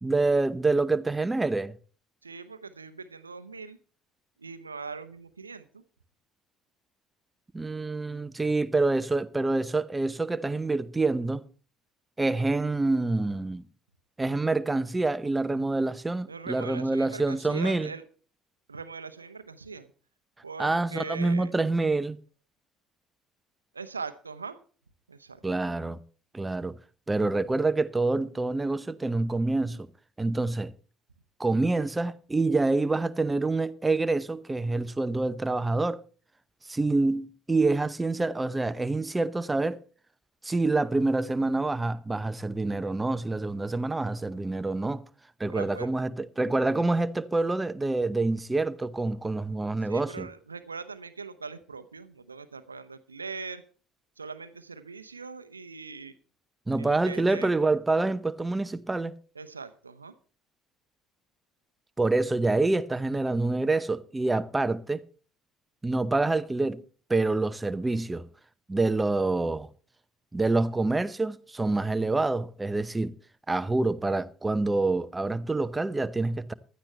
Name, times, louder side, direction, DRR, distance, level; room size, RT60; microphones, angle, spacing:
voice 1, 0.0-1.7 7.5-11.5 12.2-13.6 14.2-17.9 20.6-22.2 25.4-26.0 26.3-26.7 27.1-29.9 30.2-30.7 31.4-36.0 36.7-39.8 40.4-45.0 45.4-50.3 56.7-59.2 62.0-65.0 65.8-66.8 67.1-68.3 68.7-69.7 70.3-73.1 73.5-76.5, right 2 dB, 15° right, 0.8 m, -27 dB
voice 2, 2.2-3.8 4.4-5.8 16.3-18.0 18.7-19.9 20.4-21.5 23.7-24.6 25.1-25.6 45.5-45.9 49.8-53.6 54.2-56.1 56.7-57.5 59.3-60.1, right 4 dB, 85° right, 0.8 m, -41 dB
16.0 x 12.5 x 3.3 m
figure-of-eight pair, 55°, 0 cm